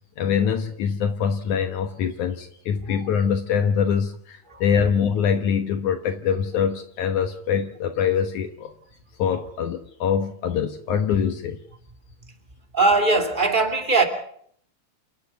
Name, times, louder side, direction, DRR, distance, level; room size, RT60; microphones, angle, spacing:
voice 1, 0.2-8.7 9.2-11.6, left 7 dB, 65° left, 2.4 m, -24 dB
voice 2, 12.7-14.0, right 3 dB, 15° right, 2.4 m, -20 dB
29.0 x 10.5 x 9.5 m
omnidirectional pair, 4.0 m